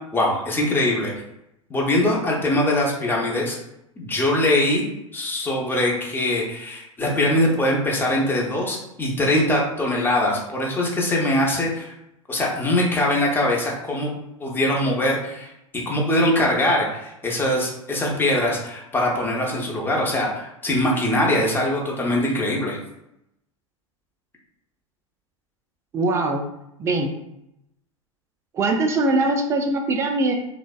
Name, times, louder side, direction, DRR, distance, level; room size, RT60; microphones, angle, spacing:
voice 1, 0.1-1.1 1.7-3.6 4.0-4.8 5.1-11.9 12.3-14.1 14.4-22.8, left 1 dB, 10° left, -2 dB, 0.7 m, -22 dB
voice 2, 25.9-26.4 26.8-27.1 28.5-30.4, right 2 dB, 15° right, 3 dB, 0.4 m, -21 dB
3.2 x 2.0 x 2.3 m, 0.83 s
figure-of-eight pair, 85°, 17 cm